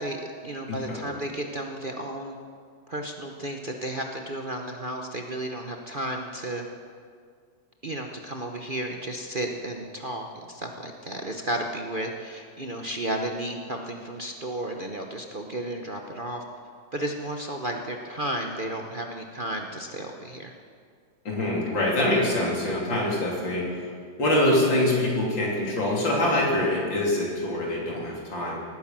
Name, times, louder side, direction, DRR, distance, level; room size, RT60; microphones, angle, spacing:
voice 1, 0.0-2.4 2.9-6.7 7.8-16.4 16.9-20.5, right 1 dB, 40° right, 3 dB, 0.8 m, -33 dB
voice 2, 0.7-1.1 21.3-23.6 24.2-28.6, left 1 dB, 80° left, -3 dB, 4.0 m, -24 dB
18.0 x 10.0 x 7.5 m, 2.1 s
omnidirectional pair, 2.0 m